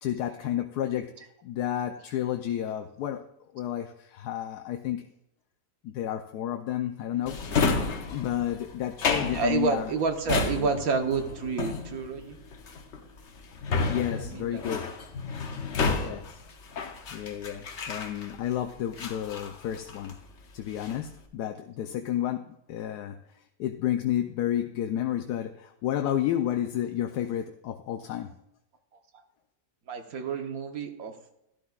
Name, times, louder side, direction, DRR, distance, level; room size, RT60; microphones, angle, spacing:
voice 1, 0.0-3.2 3.5-5.0 5.8-7.5 8.1-9.9 10.6-10.7 13.7-14.9 15.9-16.4 17.1-20.2 20.5-23.2 23.6-28.3, left 11 dB, 85° left, 5 dB, 1.2 m, -31 dB
Drawer open or close, 7.3-18.5 19.0-20.2 20.6-21.1, left 4 dB, 50° left, 1.1 m, -31 dB
voice 2, 9.3-12.4 14.1-14.6 29.9-31.1, right 4 dB, 65° right, 6 dB, 1.4 m, -29 dB
12.5 x 12.0 x 2.4 m, 0.82 s
omnidirectional pair, 1.7 m